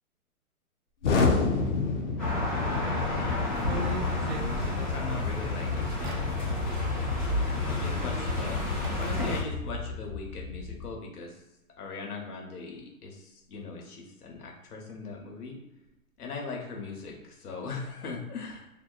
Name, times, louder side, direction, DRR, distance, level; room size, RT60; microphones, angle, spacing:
Explosion, 1.0-11.0, left 4 dB, 55° left, 0.5 m, -31 dB
sound 1, 2.2-9.4, left 2 dB, 5° left, 0.7 m, -31 dB
voice 1, 2.6-3.9 4.3-8.6 9.0-11.4 11.8-15.6 16.2-18.8, left 4 dB, 85° left, 1 dB, 0.9 m, -40 dB
sound 2, 3.5-5.3 5.8-6.2 7.5-7.6 8.8-9.2, right 1 dB, 45° right, 0.5 m, -36 dB
2.8 x 2.1 x 2.3 m, 0.95 s
hypercardioid pair, 155°, 44 cm